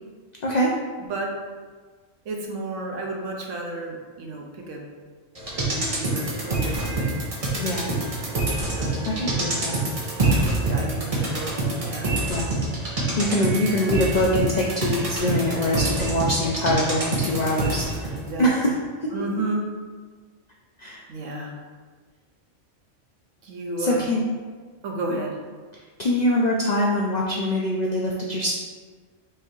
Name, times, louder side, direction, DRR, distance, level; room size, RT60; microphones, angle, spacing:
voice 1, 0.4-0.7 7.6-7.9 9.0-9.8 12.3-12.5 13.2-18.7 20.8-21.0 23.8-24.4 26.0-28.5, left 1 dB, 65° left, -2 dB, 0.4 m, -24 dB
voice 2, 2.2-4.9 5.5-7.2 8.7-9.2 10.7-11.5 11.8-12.1 18.1-18.8 19.1-19.7 21.1-21.5 23.4-24.1 24.8-25.4, right 2 dB, 80° right, 0 dB, 1.1 m, -32 dB
sound 1, 5.3-18.2 18.5-18.6, right 2 dB, 35° right, 0.8 m, -26 dB
4.8 x 3.4 x 3.1 m, 1.5 s
omnidirectional pair, 1.3 m